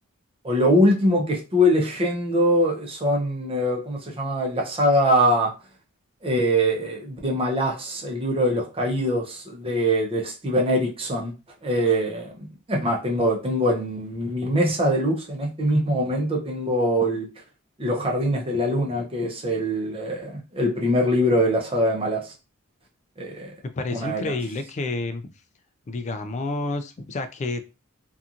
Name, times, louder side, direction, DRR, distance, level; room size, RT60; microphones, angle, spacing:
voice 1, 0.4-5.5 6.2-11.3 11.6-17.3 17.8-22.3 23.2-23.5 23.9-24.3, equal, 25° right, 0 dB, 0.7 m, -23 dB
voice 2, 23.7-25.3 25.9-27.6, left 2 dB, 30° left, 9 dB, 0.3 m, -29 dB
2.8 x 2.4 x 2.5 m, 0.30 s
head